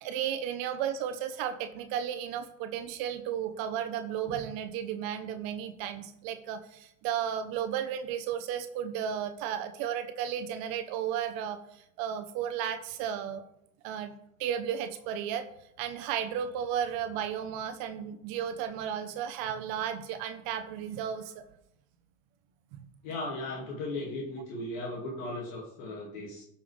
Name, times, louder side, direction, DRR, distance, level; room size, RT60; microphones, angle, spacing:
voice 1, 0.0-13.4 13.8-15.5 15.8-21.3 22.7-22.9, right 9 dB, 55° right, 9 dB, 0.9 m, -34 dB
voice 2, 23.0-26.4, left 2 dB, 70° left, -3 dB, 2.2 m, -37 dB
13.0 x 5.7 x 3.3 m, 0.78 s
hypercardioid pair, 85°, 42 cm